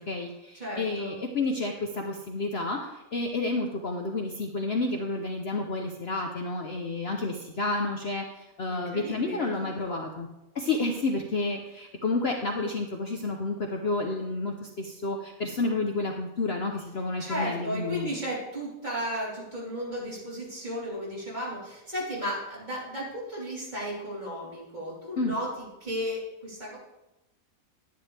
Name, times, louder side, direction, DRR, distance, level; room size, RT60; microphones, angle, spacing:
voice 1, 0.0-10.3 10.5-18.1 25.2-25.3, left 2 dB, 50° left, 2 dB, 1.0 m, -30 dB
voice 2, 0.6-1.2 8.7-10.0 17.2-25.5 25.8-26.8, equal, 30° right, -7 dB, 3.8 m, -34 dB
10.5 x 10.5 x 3.4 m, 0.94 s
omnidirectional pair, 1.5 m